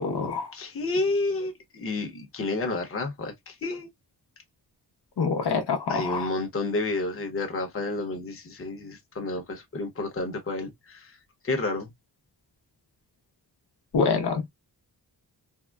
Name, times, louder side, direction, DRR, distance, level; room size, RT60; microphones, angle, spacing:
voice 1, 0.0-0.5 5.2-6.3 13.9-14.5, left 5 dB, 80° left, 0.8 m, -26 dB
voice 2, 0.5-3.9 5.9-11.2 11.4-11.9, left 2 dB, 35° left, 0.8 m, -30 dB
3.6 x 2.0 x 2.2 m
wide cardioid pair, 160°, 39 cm